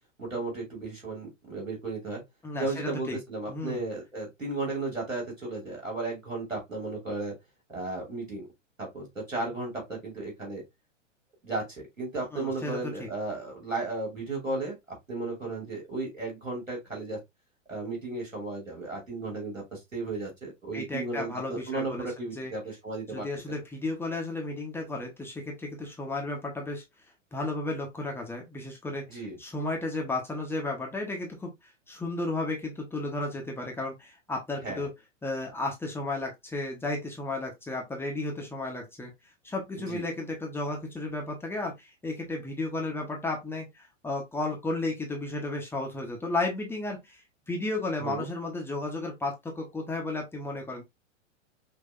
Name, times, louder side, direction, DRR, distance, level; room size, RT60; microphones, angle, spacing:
voice 1, 0.2-2.2 2.6-7.3 7.7-8.5 8.8-10.6 11.4-17.2 17.7-23.3 29.1-29.4 34.6-34.9 39.8-40.0 48.0-48.3, right 3 dB, 85° right, 3.0 m, -34 dB
voice 2, 2.4-3.2 3.5-3.9 12.3-13.1 20.7-22.5 23.1-26.8 27.3-34.9 35.2-39.1 39.4-47.2 47.5-50.8, left 2 dB, 5° left, 0.8 m, -33 dB
5.7 x 2.7 x 2.4 m
figure-of-eight pair, 105°, 38 cm